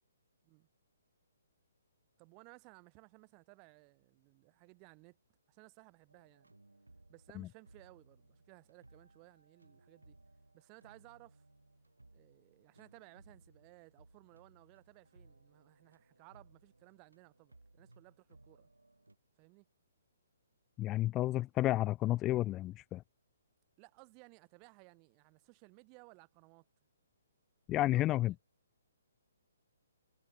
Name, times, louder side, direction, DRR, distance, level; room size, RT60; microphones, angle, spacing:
voice 1, 2.2-5.2 5.5-6.5 7.1-10.2 10.5-11.4 12.1-18.7 19.4-19.7 23.8-26.7 27.9-28.3, right 36 dB, 25° right, 2.6 m, -60 dB
sound 1, 6.1-19.2, right 2 dB, 80° right, 5.1 m, -64 dB
voice 2, 20.8-23.0 27.7-28.3, left 15 dB, 20° left, 0.5 m, -31 dB
figure-of-eight pair, 130°, 0 cm